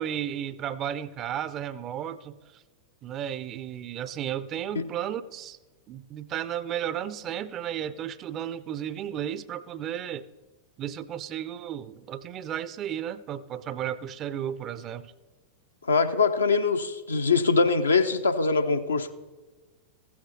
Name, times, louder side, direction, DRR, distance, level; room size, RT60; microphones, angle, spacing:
voice 1, 0.0-2.6 3.0-5.6 5.9-10.3 10.8-15.1, right 10 dB, 30° right, 16 dB, 0.4 m, -34 dB
voice 2, 15.9-19.1, left 4 dB, 75° left, 7 dB, 0.6 m, -23 dB
15.0 x 8.5 x 4.0 m, 1.3 s
figure-of-eight pair, 90°, 0 cm